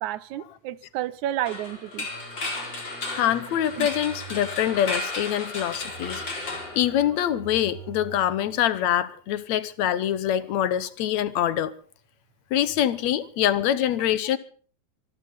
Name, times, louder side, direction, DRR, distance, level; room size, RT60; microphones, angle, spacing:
voice 1, 0.0-2.1 3.8-3.9, right 13 dB, 85° right, 2.3 m, -31 dB
sound 1, 1.5-7.4, left 2 dB, 35° left, 4.6 m, -34 dB
Singing, 1.9-9.3, right 4 dB, 55° right, 5.6 m, -45 dB
voice 2, 3.1-6.2 6.8-11.7 12.5-14.4, left 11 dB, 75° left, 2.2 m, -24 dB
26.0 x 12.5 x 3.7 m
omnidirectional pair, 3.3 m